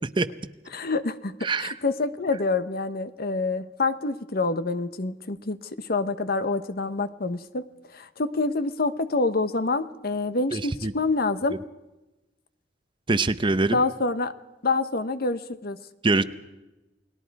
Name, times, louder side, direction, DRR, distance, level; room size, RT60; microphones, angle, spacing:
voice 1, 0.7-7.7 7.9-11.6 13.7-14.3 14.6-15.8, left 3 dB, 55° left, 11 dB, 1.0 m, -27 dB
voice 2, 1.4-1.7 10.5-10.9 13.1-13.8 16.0-16.2, right 3 dB, 25° right, 12 dB, 0.8 m, -23 dB
29.0 x 19.5 x 4.7 m, 1.0 s
head